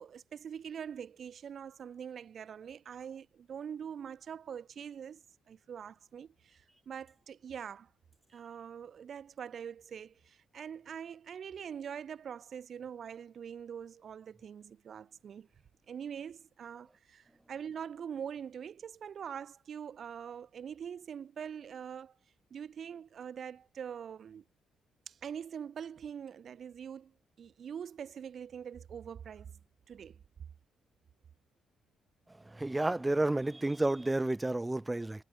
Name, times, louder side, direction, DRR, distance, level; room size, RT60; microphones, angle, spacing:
voice 1, 0.0-7.9 8.3-15.5 15.9-22.2 22.5-24.4 25.1-27.1 27.4-29.6 29.9-30.2, right 8 dB, 55° right, 4.9 m, -44 dB
voice 2, 32.4-35.2, right 2 dB, 15° right, 2.4 m, -31 dB
cardioid pair, 90°, 0 cm